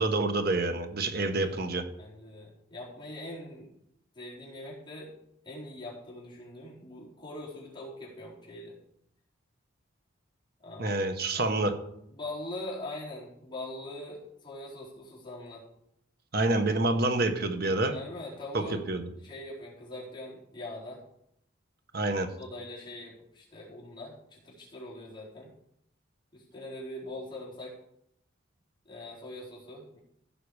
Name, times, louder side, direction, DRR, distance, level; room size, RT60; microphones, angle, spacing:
voice 1, 0.0-1.9 10.8-11.7 16.3-17.9 18.5-19.1 21.9-22.3, right 2 dB, 50° right, 7 dB, 1.1 m, -27 dB
voice 2, 1.1-1.6 2.0-3.7 4.1-5.1 5.4-8.8 10.6-11.0 11.3-11.5 12.1-15.6 17.9-18.8 19.2-21.0 22.4-25.5 26.3-27.8 28.9-30.0, left 1 dB, 25° left, -6 dB, 3.9 m, -42 dB
15.5 x 5.8 x 4.9 m, 0.76 s
head